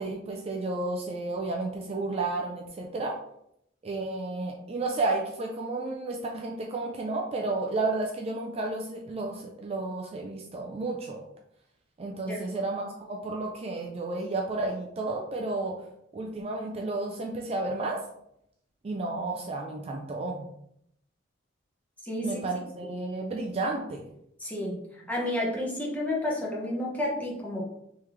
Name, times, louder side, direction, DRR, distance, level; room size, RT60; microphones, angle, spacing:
voice 1, 0.0-3.2 3.8-11.2 12.0-15.9 16.1-18.0 18.8-20.5 22.2-24.0, right 2 dB, 30° right, 0 dB, 0.4 m, -32 dB
voice 2, 22.0-22.4 24.4-27.6, left 1 dB, 10° left, -4 dB, 0.9 m, -31 dB
3.5 x 3.2 x 3.0 m, 0.75 s
head